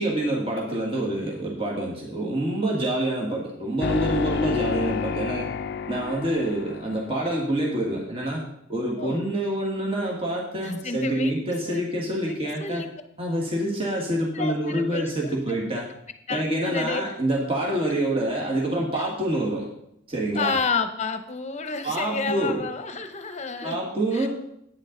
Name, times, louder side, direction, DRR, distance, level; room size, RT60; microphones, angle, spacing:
voice 1, 0.0-5.5 5.9-8.4 8.7-12.8 13.2-15.9 16.3-19.7 20.1-20.6 21.8-22.6 23.6-24.3, right 1 dB, 30° right, -2 dB, 1.6 m, -26 dB
sound 1, 3.8-7.2, left 6 dB, 60° left, 0.5 m, -29 dB
voice 2, 10.6-11.3 11.7-11.8 12.3-12.9 14.3-15.3 16.3-17.0 20.3-23.8 24.1-24.3, left 4 dB, 35° left, 9 dB, 0.8 m, -30 dB
9.7 x 9.1 x 3.9 m, 0.76 s
head